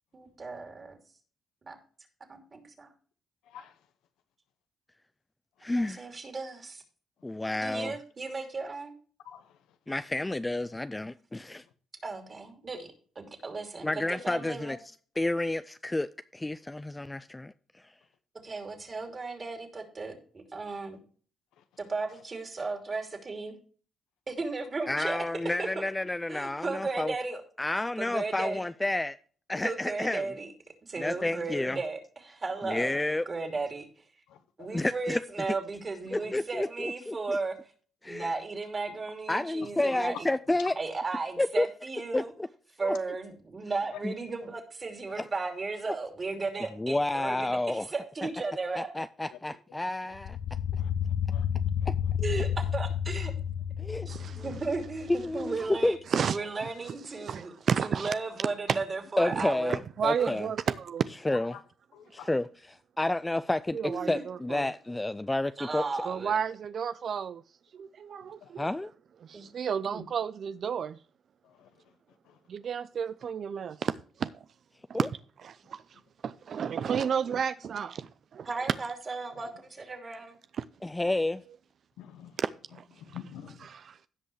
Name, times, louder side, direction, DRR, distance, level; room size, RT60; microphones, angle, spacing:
voice 1, 0.1-1.0 1.6-1.8 2.3-2.9 5.7-6.8 7.6-8.9 12.0-12.9 13.1-14.7 18.4-21.0 21.8-23.6 24.3-25.2 25.6-25.7 26.3-27.4 28.0-28.6 29.6-30.5 30.8-33.0 33.3-34.0 34.6-37.6 38.1-40.3 40.8-42.3 42.8-48.9 52.2-53.3 54.0-57.5 57.8-59.8 60.2-60.3 63.9-64.2 65.6-66.4 69.3-69.5 69.8-70.0 78.5-80.4, right 3 dB, 35° right, 2.7 m, -35 dB
voice 2, 5.6-6.1 7.2-7.9 9.9-11.6 13.8-14.8 15.2-17.5 24.9-27.1 27.6-29.2 29.5-30.2 31.0-31.8 32.6-33.2 34.7-35.2 36.1-37.4 38.0-38.3 39.3-40.7 41.4-41.7 42.1-42.2 42.8-42.9 44.0-44.1 45.2-45.3 46.8-47.9 48.8-50.4 51.9-52.0 53.8-54.1 54.4-54.5 55.1-56.0 59.2-60.5 61.2-61.5 62.1-63.8 64.1-65.8 68.6-68.9 74.9-75.1 80.8-81.4, left 2 dB, 15° left, 0.4 m, -30 dB
voice 3, 9.2-9.6 21.6-21.7 29.5-29.6 32.7-32.8 34.3-34.7 49.3-49.4 50.8-50.9 51.3-51.5 59.2-59.3 61.3-61.6 61.9-62.3 68.4-68.5 71.4-71.7 72.3-72.4 82.0-82.4 83.0-83.7, left 9 dB, 90° left, 1.0 m, -47 dB
sound 1, 50.1-55.4, left 9 dB, 65° left, 0.5 m, -31 dB
voice 4, 54.1-54.4 56.1-56.4 57.3-58.1 58.7-58.8 59.4-59.5 60.0-61.0 63.7-64.7 66.1-67.4 67.7-68.7 69.2-71.0 72.5-73.9 74.2-74.3 75.4-75.8 76.2-78.5 82.4-82.8 83.7-84.1, right 7 dB, 55° right, 0.4 m, -32 dB
16.5 x 5.5 x 3.2 m
cardioid pair, 90°, 0 cm